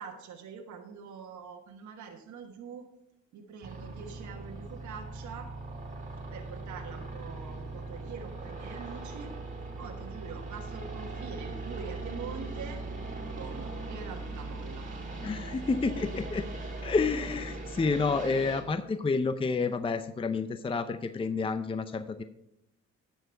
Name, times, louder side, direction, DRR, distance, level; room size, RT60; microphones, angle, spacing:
voice 1, 0.0-2.9 3.3-5.5 6.3-9.3 9.8-12.8 13.3-14.9, right 6 dB, 70° right, 2 dB, 1.3 m, -44 dB
sound 1, 3.6-18.6, right 2 dB, 25° right, 2.4 m, -40 dB
voice 2, 15.2-16.5 16.8-22.2, left 4 dB, 20° left, 11 dB, 0.5 m, -29 dB
10.5 x 7.1 x 4.5 m, 0.82 s
cardioid pair, 90°, 30 cm